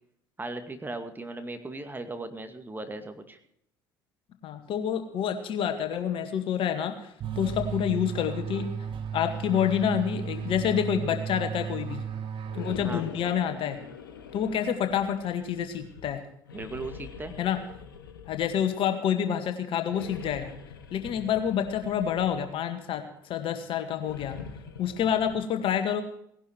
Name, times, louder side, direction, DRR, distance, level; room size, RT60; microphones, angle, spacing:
voice 1, 0.4-3.4 12.8-13.1 16.5-17.3, right 2 dB, 20° right, 7 dB, 2.2 m, -37 dB
voice 2, 4.4-8.7 9.1-12.1 12.5-13.8 14.3-16.2 17.4-17.6 18.3-20.5 20.9-24.4 24.8-26.0, left 8 dB, 50° left, 7 dB, 2.0 m, -28 dB
sound 1, 7.2-13.3, right 7 dB, 50° right, 1.8 m, -35 dB
sound 2, 12.5-16.1 16.5-18.8 19.8-22.6 23.9-25.4, left 6 dB, 85° left, 1.5 m, -44 dB
18.0 x 11.5 x 4.6 m, 0.71 s
hypercardioid pair, 60°, 11 cm